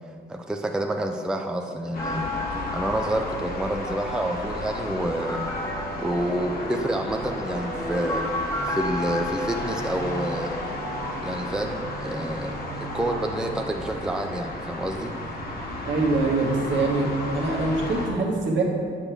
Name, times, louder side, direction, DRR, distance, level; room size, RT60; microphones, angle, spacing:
voice 1, 0.3-2.3 2.7-5.4 6.0-8.2 8.6-10.5 11.2-15.1, right 1 dB, 5° right, 3 dB, 0.4 m, -28 dB
sound 1, 1.9-18.1, left 1 dB, 50° left, 1.3 m, -34 dB
sound 2, 2.0-12.0, left 1 dB, 15° left, 1.0 m, -34 dB
voice 2, 15.8-18.6, right 3 dB, 70° right, -1 dB, 1.3 m, -24 dB
8.1 x 5.8 x 3.4 m, 2.2 s
cardioid pair, 90°, 20 cm